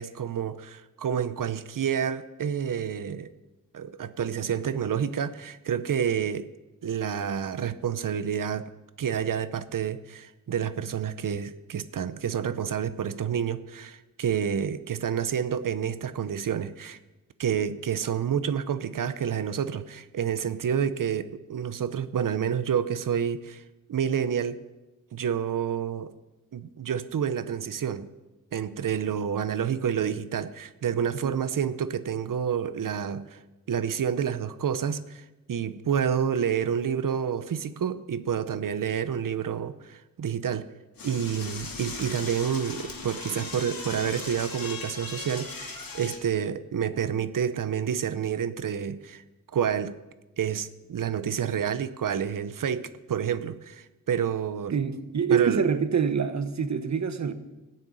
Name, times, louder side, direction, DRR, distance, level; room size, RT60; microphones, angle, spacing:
voice 1, 0.0-3.3 3.7-6.5 6.8-8.7 9.0-17.0 17.4-23.6 23.9-24.6 25.1-26.1 26.5-28.1 28.5-33.4 33.7-40.7 41.0-49.2 49.5-50.0 50.4-54.8 55.3-55.7, right 8 dB, 70° right, 0.8 m, -29 dB
Door / Toilet flush, 41.0-46.2, left 4 dB, 80° left, 2.6 m, -38 dB
voice 2, 54.7-57.3, right 6 dB, 55° right, 1.2 m, -25 dB
16.0 x 6.7 x 9.2 m
wide cardioid pair, 105°, 34 cm